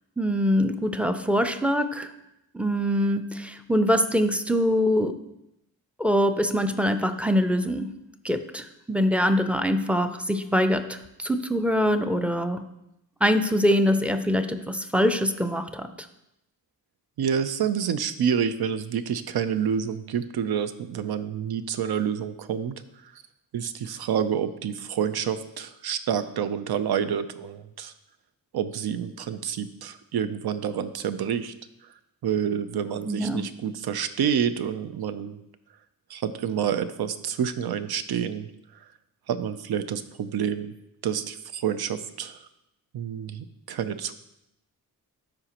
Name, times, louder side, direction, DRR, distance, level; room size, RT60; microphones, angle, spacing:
voice 1, 0.2-2.1 2.5-5.2 6.0-7.9 8.2-12.6 13.2-16.1 33.0-33.5, equal, 5° right, 8 dB, 0.4 m, -24 dB
voice 2, 17.2-22.7 23.5-27.9 28.5-31.5 32.2-35.4 36.1-38.5 39.3-40.7 41.0-42.4 42.9-44.2, right 8 dB, 85° right, 11 dB, 0.6 m, -28 dB
13.0 x 5.0 x 2.9 m, 0.86 s
wide cardioid pair, 110°, 37 cm